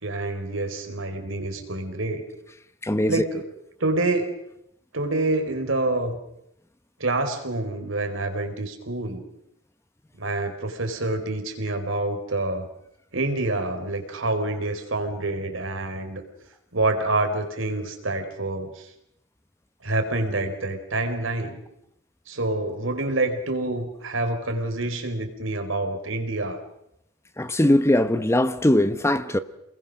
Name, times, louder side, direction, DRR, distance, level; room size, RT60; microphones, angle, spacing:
voice 1, 0.0-2.2 3.1-3.5 3.8-4.3 4.9-6.2 7.0-9.2 10.2-12.7 13.1-16.2 16.7-18.9 19.8-21.6 22.3-26.6, right 2 dB, 70° right, 4.1 m, -27 dB
voice 2, 2.8-3.2 27.4-29.4, left 1 dB, 15° left, 0.9 m, -20 dB
28.0 x 21.0 x 6.5 m
head